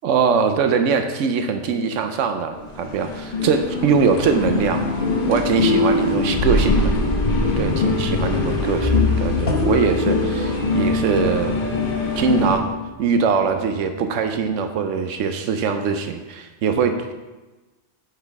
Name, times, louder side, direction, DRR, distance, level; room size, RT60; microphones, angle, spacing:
voice 1, 0.0-4.9 5.3-6.9 7.6-11.6 12.2-12.7 13.0-17.1, right 6 dB, 90° right, 7 dB, 1.0 m, -22 dB
sound 1, 2.5-12.6, left 2 dB, 50° left, 1.0 m, -22 dB
Bowed string instrument, 8.8-13.0, left 6 dB, 45° right, 1.2 m, -30 dB
7.8 x 5.7 x 3.5 m, 1.2 s
omnidirectional pair, 1.3 m